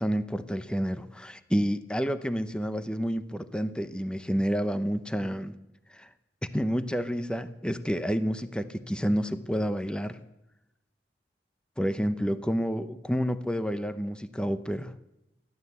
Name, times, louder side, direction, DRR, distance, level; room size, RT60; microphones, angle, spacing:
voice 1, 0.0-5.5 5.9-6.1 6.5-10.2 11.8-15.0, equal, 5° left, 11 dB, 0.8 m, -29 dB
30.0 x 12.0 x 8.0 m, 0.92 s
head